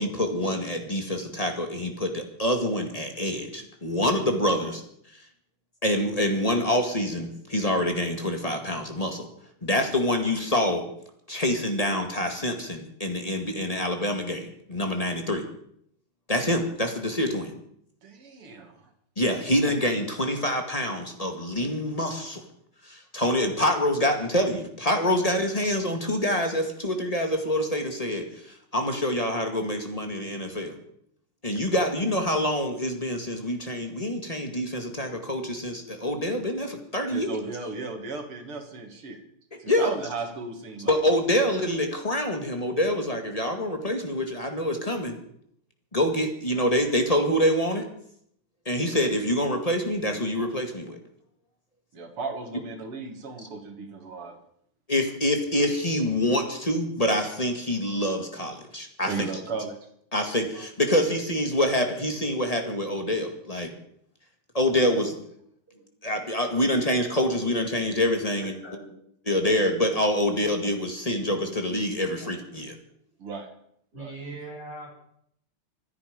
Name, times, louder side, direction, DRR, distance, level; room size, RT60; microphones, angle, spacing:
voice 1, 0.0-4.8 5.8-9.3 9.6-10.8 11.3-15.4 16.3-17.5 19.2-22.4 22.8-30.8 31.4-37.3 39.7-40.0 40.8-45.2 45.9-47.9 48.7-51.0 53.4-53.5 54.9-59.3 60.1-63.7 64.5-65.2 66.0-68.5 69.3-72.7, left 1 dB, 15° left, 4 dB, 1.9 m, -26 dB
voice 2, 18.0-18.7 37.1-39.2 39.6-40.9 51.9-54.3 59.1-59.8 73.2-73.5 74.0-74.1, right 4 dB, 80° right, 5 dB, 3.2 m, -35 dB
voice 3, 68.4-68.9 72.2-72.3 73.9-74.9, right 2 dB, 25° right, -4 dB, 6.9 m, -41 dB
25.5 x 9.9 x 5.2 m, 0.70 s
omnidirectional pair, 2.4 m